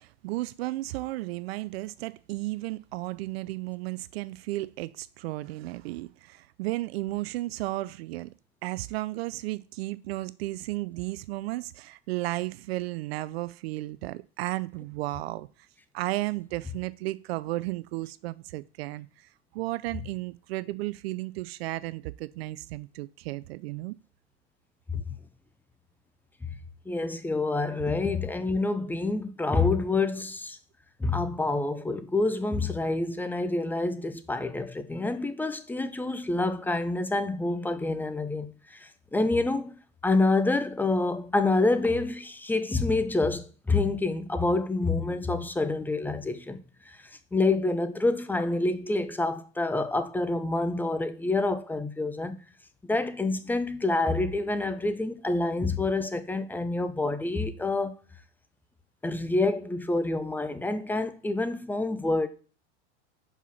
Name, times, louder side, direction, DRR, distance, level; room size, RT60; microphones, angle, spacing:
voice 1, 0.0-8.3 8.6-15.5 15.9-24.0, right 18 dB, 65° right, 0.5 m, -34 dB
voice 2, 26.9-30.6 31.0-39.8 40.0-47.0 47.3-52.4 52.8-57.9 59.0-62.3, left 2 dB, 5° left, 0.5 m, -27 dB
5.6 x 4.8 x 5.6 m
hypercardioid pair, 105°, 34 cm